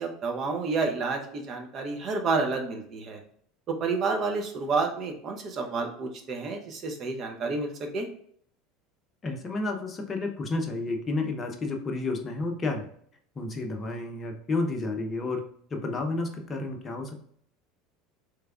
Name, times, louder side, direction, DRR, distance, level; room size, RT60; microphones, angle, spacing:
voice 1, 0.0-3.2 3.7-8.1, right 4 dB, 40° right, 3 dB, 0.8 m, -30 dB
voice 2, 9.2-12.9 13.4-15.4 15.7-17.2, left 3 dB, 30° left, 4 dB, 0.7 m, -31 dB
3.3 x 3.2 x 2.3 m, 0.63 s
figure-of-eight pair, 70°, 0 cm